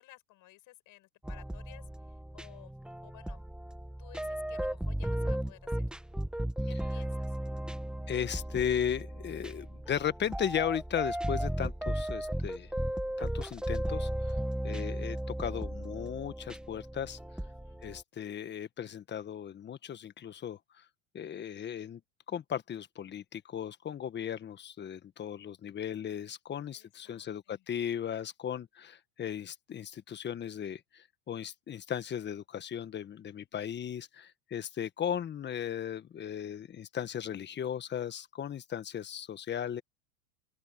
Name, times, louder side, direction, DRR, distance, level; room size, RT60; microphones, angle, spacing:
voice 1, 0.0-1.8 2.3-2.7 3.0-3.4 4.0-5.9 6.7-7.3 17.4-17.8 26.7-27.6, left 17 dB, 45° left, 7.4 m, -55 dB
sound 1, 1.2-18.0, right 1 dB, ahead, 1.7 m, -35 dB
voice 2, 8.1-12.7 13.2-14.4 14.6-17.2 17.8-20.8 21.1-22.0 22.3-39.8, left 9 dB, 25° left, 1.4 m, -36 dB
open air
hypercardioid pair, 115°, 42 cm